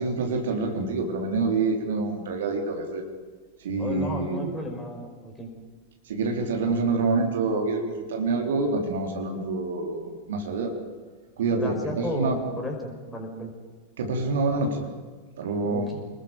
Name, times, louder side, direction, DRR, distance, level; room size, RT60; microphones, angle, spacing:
voice 1, 0.0-3.0 3.6-4.5 6.1-10.7 11.4-12.4 14.0-14.9 15.4-15.9, right 3 dB, 60° right, 2 dB, 3.5 m, -27 dB
voice 2, 3.8-5.5 11.5-13.5 15.7-16.0, left 1 dB, 10° left, 2 dB, 5.3 m, -34 dB
29.0 x 20.5 x 5.1 m, 1.4 s
figure-of-eight pair, 90°, 0 cm